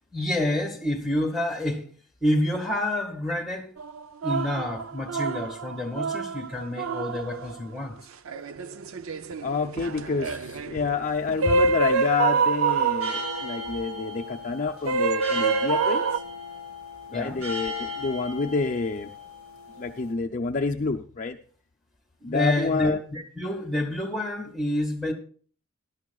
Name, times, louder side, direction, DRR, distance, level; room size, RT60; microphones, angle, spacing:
voice 1, 0.1-1.9 2.2-3.7 4.2-7.9 17.1-17.4 22.2-25.1, left 1 dB, ahead, 2.0 m, -28 dB
sound 1, 3.8-7.6 8.3-13.7 14.9-16.2, right 4 dB, 65° right, 0.6 m, -27 dB
voice 2, 9.4-16.2 17.1-19.1 19.8-21.4 22.2-23.0, left 4 dB, 35° left, 0.6 m, -28 dB
sound 2, 11.0-20.1, left 2 dB, 85° right, 6.9 m, -38 dB
19.5 x 11.5 x 2.4 m
head